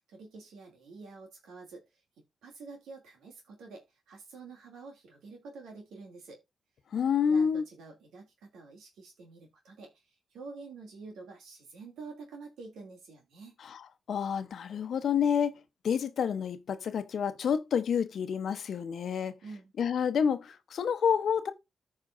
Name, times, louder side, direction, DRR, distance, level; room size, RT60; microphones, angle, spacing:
voice 1, 0.0-2.0 2.4-6.4 7.2-13.6 19.4-19.7, right 4 dB, 85° right, 2.8 m, -48 dB
voice 2, 6.9-7.6 13.7-13.8 14.1-19.3 19.8-21.5, left 7 dB, 70° left, 0.9 m, -29 dB
14.5 x 4.9 x 2.6 m
supercardioid pair, 50°, 0 cm